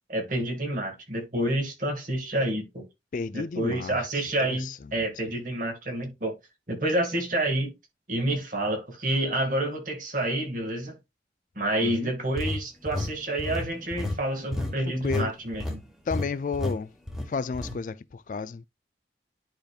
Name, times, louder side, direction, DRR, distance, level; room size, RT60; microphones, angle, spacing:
voice 1, 0.1-2.8 3.3-6.3 6.7-7.7 8.1-11.0 11.6-15.8, right 1 dB, 45° right, 2.1 m, -28 dB
voice 2, 3.1-4.8 11.8-12.1 14.6-14.7 15.0-15.3 16.1-16.9 17.3-18.7, left 4 dB, 45° left, 0.3 m, -32 dB
sound 1, 12.3-15.3 15.5-15.8 16.1-16.3 16.5-16.8 17.1-17.8, left 2 dB, ahead, 1.4 m, -31 dB
10.5 x 5.1 x 2.4 m
head